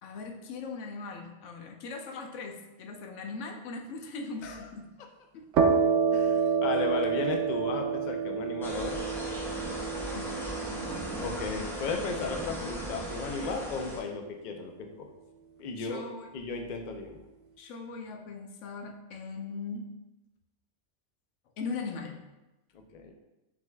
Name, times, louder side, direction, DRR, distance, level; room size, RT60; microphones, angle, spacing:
voice 1, 0.0-4.9 5.3-5.5 6.3-6.6 6.8-7.1 10.1-11.0 15.8-16.3 17.6-20.0 21.6-22.2, left 4 dB, 90° left, 3 dB, 0.9 m, -40 dB
sound 1, 5.5-13.0, right 6 dB, 75° right, 0.9 m, -29 dB
voice 2, 6.1-9.0 11.2-15.1 15.6-16.0 16.3-17.2 22.9-23.1, left 4 dB, 55° left, 4 dB, 0.5 m, -35 dB
sound 2, 8.6-14.0, right 1 dB, 5° left, 0.4 m, -37 dB
6.0 x 3.5 x 2.2 m, 0.99 s
omnidirectional pair, 1.2 m